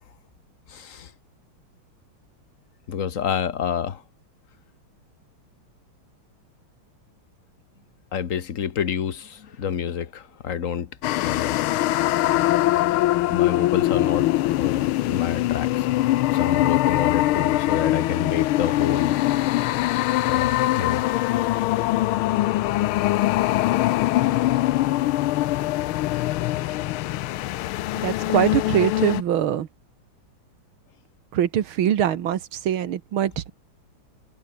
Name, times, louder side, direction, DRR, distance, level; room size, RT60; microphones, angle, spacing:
voice 1, 0.7-1.1 2.9-4.0 8.1-10.9 11.2-11.6 12.9-13.0 13.3-14.3 14.6-15.9 16.3-19.1 20.2-21.0, left 8 dB, 45° left, 1.4 m, -28 dB
sound 1, 11.0-29.2, left 16 dB, 85° left, 1.6 m, -22 dB
voice 2, 28.0-29.7 31.3-33.5, right 10 dB, 80° right, 2.1 m, -23 dB
omnidirectional pair, 2.3 m